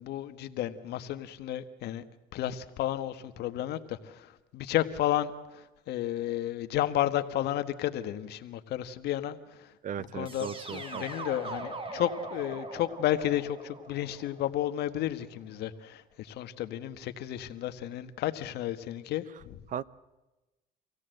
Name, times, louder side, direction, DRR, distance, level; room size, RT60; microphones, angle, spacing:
voice 1, 0.0-2.0 2.3-9.4 10.0-19.6, left 12 dB, 75° left, 10 dB, 1.5 m, -32 dB
voice 2, 9.8-11.0 19.7-19.8, right 9 dB, 50° right, 19 dB, 0.8 m, -37 dB
sound 1, 10.3-15.2, right 2 dB, 30° right, 4.0 m, -41 dB
26.0 x 17.0 x 7.8 m, 1.1 s
cardioid pair, 110°, 17 cm